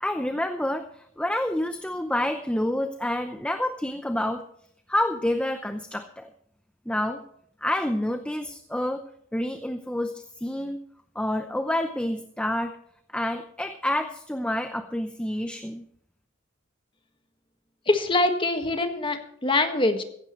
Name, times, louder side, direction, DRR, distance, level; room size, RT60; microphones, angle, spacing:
voice 1, 0.0-4.5 4.9-6.3 6.9-7.2 7.6-9.1 9.3-10.8 11.1-12.8 13.1-15.8, left 1 dB, 5° left, 7 dB, 0.7 m, -28 dB
voice 2, 17.9-19.2 19.4-20.0, left 2 dB, 25° left, 6 dB, 1.6 m, -23 dB
16.0 x 15.5 x 3.1 m, 0.71 s
head